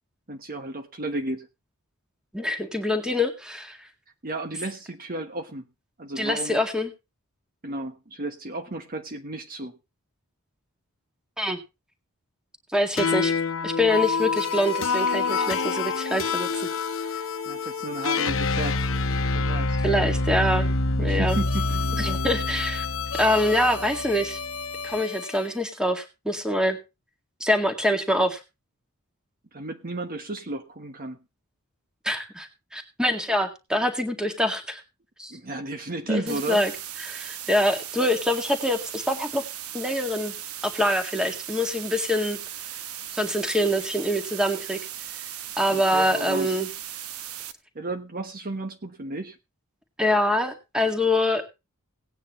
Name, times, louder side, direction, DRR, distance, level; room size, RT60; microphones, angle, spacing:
voice 1, 0.3-1.5 4.2-5.6 6.0-6.6 7.6-9.7 17.4-18.8 19.3-19.8 21.0-21.9 29.5-31.2 35.3-36.6 45.7-46.6 47.7-49.4, right 2 dB, 40° right, 6 dB, 1.3 m, -33 dB
voice 2, 2.3-3.8 6.2-6.9 11.4-11.6 12.7-13.3 13.6-16.5 19.8-20.7 21.0-21.4 22.0-22.9 23.2-24.4 24.8-26.8 27.4-28.4 32.0-34.8 35.2-35.3 36.1-36.7 37.0-39.4 39.7-40.3 40.6-42.4 43.1-44.8 45.6-46.7 50.0-51.4, left 1 dB, 5° right, 5 dB, 2.0 m, -25 dB
sound 1, 13.0-25.5, left 3 dB, 65° left, 1.1 m, -27 dB
sound 2, 36.3-47.5, right 11 dB, 80° right, 1.1 m, -37 dB
18.0 x 9.6 x 3.1 m, 0.26 s
head